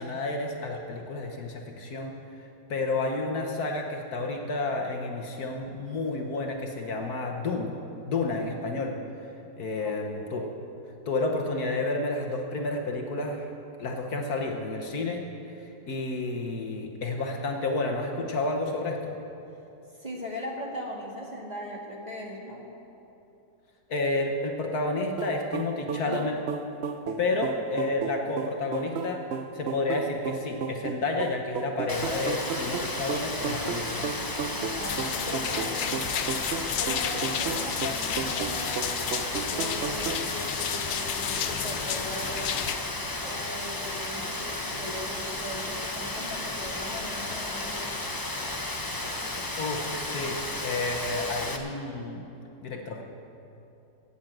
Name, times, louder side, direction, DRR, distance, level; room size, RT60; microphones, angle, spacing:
voice 1, 0.0-2.1 2.4-7.8 8.0-9.0 9.6-10.5 11.1-13.5 13.8-15.2 15.6-19.1 23.9-26.4 27.2-29.2 29.5-34.1 49.6-52.2 52.6-53.0, left 2 dB, 60° left, 2 dB, 1.5 m, -30 dB
voice 2, 9.8-10.4 20.0-22.7 25.9-26.2 27.2-27.4 34.7-36.4 36.8-38.8 39.5-42.6 43.2-47.9, equal, 25° right, -2 dB, 1.8 m, -39 dB
sound 1, 25.2-40.3, right 5 dB, 70° right, 0.6 m, -34 dB
Rain, 31.9-51.6, left 2 dB, 20° left, 0.5 m, -33 dB
sound 2, 34.8-42.8, left 9 dB, 90° left, 1.4 m, -33 dB
17.5 x 7.3 x 7.7 m, 2.9 s
omnidirectional pair, 2.0 m